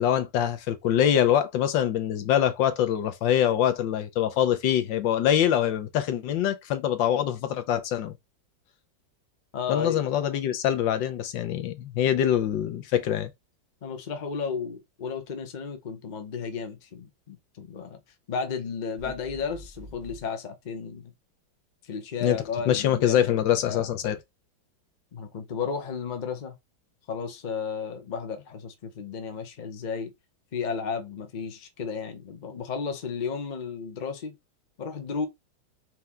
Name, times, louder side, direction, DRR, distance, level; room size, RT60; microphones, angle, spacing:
voice 1, 0.0-8.1 9.7-13.3 22.2-22.4 22.7-24.2, left 10 dB, 75° left, 1.4 m, -24 dB
voice 2, 9.5-10.0 13.8-18.0 18.3-21.1 21.8-23.4 23.7-23.9 25.1-26.5 27.1-30.1 30.5-34.3 34.8-35.3, left 5 dB, 45° left, 0.6 m, -33 dB
sound 1, 19.0-20.3, equal, 20° right, 1.0 m, -46 dB
4.6 x 2.8 x 3.5 m
omnidirectional pair, 2.1 m